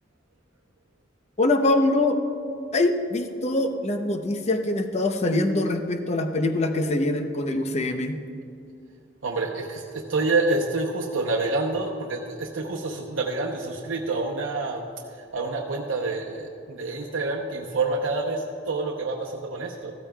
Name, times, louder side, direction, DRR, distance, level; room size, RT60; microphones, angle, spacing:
voice 1, 1.4-2.2 2.7-8.2, left 2 dB, 35° left, 6 dB, 0.7 m, -24 dB
voice 2, 9.2-14.9 15.2-19.9, right 3 dB, 90° right, -1 dB, 0.8 m, -27 dB
15.0 x 13.0 x 2.3 m, 2.5 s
head